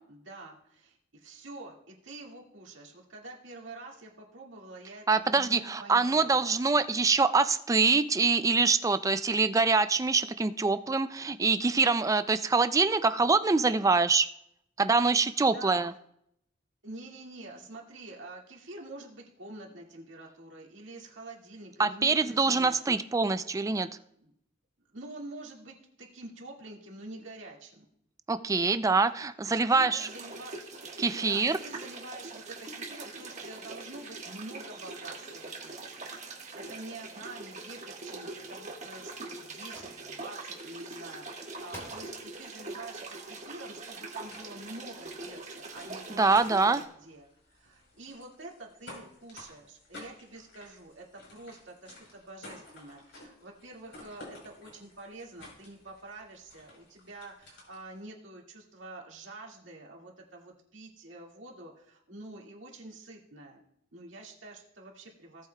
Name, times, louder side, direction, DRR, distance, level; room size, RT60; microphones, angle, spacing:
voice 1, 0.1-6.4 15.4-15.8 16.8-22.8 23.8-24.3 24.9-27.8 28.5-28.8 29.5-30.6 31.1-36.0 36.3-47.3 47.5-63.6 63.9-65.5, right 2 dB, 75° right, -1 dB, 2.0 m, -47 dB
voice 2, 5.1-14.3 14.8-15.9 21.8-23.9 28.3-30.1 31.0-31.6 46.2-46.8, right 4 dB, 15° right, 12 dB, 0.3 m, -25 dB
sound 1, 29.9-46.8, right 3 dB, 40° right, 1.4 m, -43 dB
sound 2, 38.4-38.5 39.0-39.4 39.7-39.9 41.1-41.2 41.7-42.2 42.7-42.8, equal, 15° left, 3.2 m, -47 dB
sound 3, 42.3-58.0, left 2 dB, 70° left, 4.1 m, -54 dB
17.0 x 8.3 x 2.3 m, 0.74 s
head